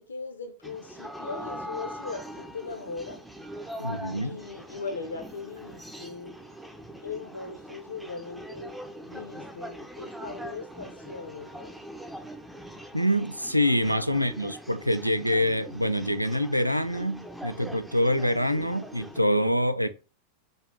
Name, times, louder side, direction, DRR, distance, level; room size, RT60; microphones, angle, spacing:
voice 1, 0.0-3.2 3.8-3.9 4.2-6.4 7.0-8.7 9.0-11.8 13.8-14.0, left 4 dB, 75° left, 0.8 m, -39 dB
sound 1, 0.6-19.2, right 1 dB, 5° right, 0.6 m, -42 dB
voice 2, 3.8-4.4 12.9-19.9, equal, 90° right, 0.3 m, -25 dB
5.1 x 2.4 x 3.9 m
figure-of-eight pair, 90°, 0 cm